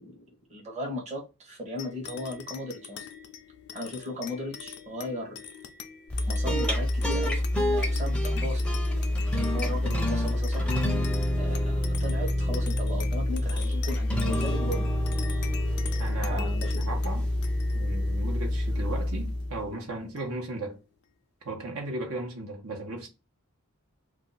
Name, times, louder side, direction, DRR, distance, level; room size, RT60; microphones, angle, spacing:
voice 1, 0.0-3.1 3.7-5.4 6.3-7.5 7.7-8.6 9.3-10.9 11.4-14.9 16.2-16.8, left 1 dB, 30° right, 1.0 m, -37 dB
sound 1, 1.8-20.6, left 8 dB, 50° left, 0.5 m, -44 dB
sound 2, 6.1-19.7, left 1 dB, 5° left, 0.6 m, -27 dB
voice 2, 16.0-16.5 16.8-17.3 17.7-20.8 21.4-23.1, right 2 dB, 70° right, 1.0 m, -36 dB
2.6 x 2.3 x 3.9 m
head